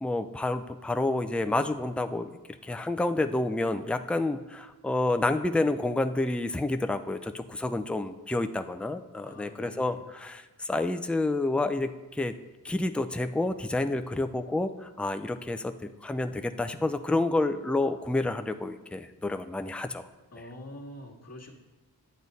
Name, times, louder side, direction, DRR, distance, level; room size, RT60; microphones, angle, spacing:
voice 1, 0.0-2.3 2.6-12.3 12.6-20.1, left 2 dB, 5° left, 8 dB, 0.4 m, -29 dB
voice 2, 9.2-10.1 20.3-21.5, left 1 dB, 45° left, -1 dB, 1.7 m, -45 dB
10.5 x 8.5 x 4.1 m, 1.2 s
wide cardioid pair, 85°, 36 cm